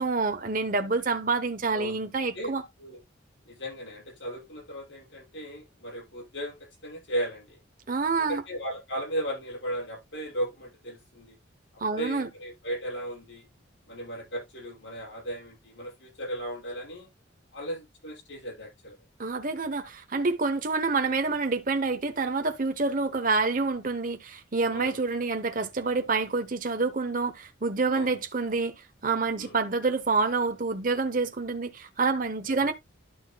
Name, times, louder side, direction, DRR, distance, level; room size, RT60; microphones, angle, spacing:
voice 1, 0.0-2.6 7.9-8.4 11.8-12.3 19.2-28.7 29.0-32.7, right 4 dB, 45° right, 0.8 m, -27 dB
voice 2, 1.7-2.0 2.3-2.5 2.8-3.0 3.5-6.5 6.8-7.6 8.3-11.4 11.7-13.4 13.9-17.1 17.5-19.0 24.7-25.0 27.9-28.1 29.4-29.6 32.5-32.7, right 1 dB, 65° left, 6.1 m, -36 dB
12.0 x 6.3 x 2.2 m
head